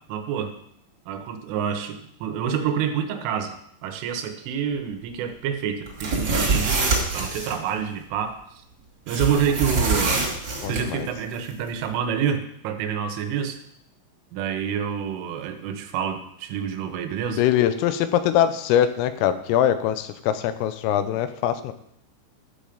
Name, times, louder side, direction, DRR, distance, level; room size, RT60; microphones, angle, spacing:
voice 1, 0.1-0.5 1.1-3.5 3.8-8.4 9.1-10.3 10.7-13.6 14.3-17.4, right 8 dB, 80° right, 7 dB, 3.4 m, -27 dB
sound 1, 5.9-7.5 9.1-10.8, right 3 dB, 35° right, 2.1 m, -24 dB
voice 2, 10.6-11.1 17.4-21.7, left 10 dB, 90° left, 11 dB, 3.4 m, -22 dB
12.0 x 7.1 x 5.1 m, 0.72 s
omnidirectional pair, 5.8 m